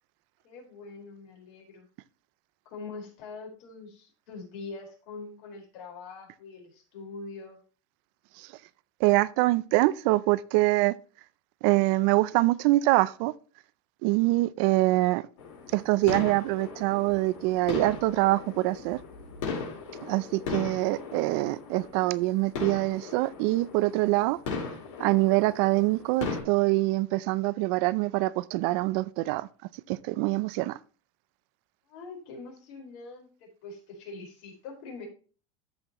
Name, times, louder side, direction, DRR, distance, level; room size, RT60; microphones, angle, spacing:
voice 1, 0.4-1.9 2.6-7.6 31.9-35.1, left 4 dB, 60° left, 4.5 m, -43 dB
voice 2, 9.0-10.9 11.6-13.3 14.0-15.2 15.7-19.0 20.1-24.4 25.0-29.5 29.9-30.8, right 19 dB, 55° right, 0.4 m, -24 dB
sound 1, 15.4-26.4, left 4 dB, 85° left, 4.1 m, -38 dB
14.0 x 5.7 x 3.0 m
supercardioid pair, 155°, 16 cm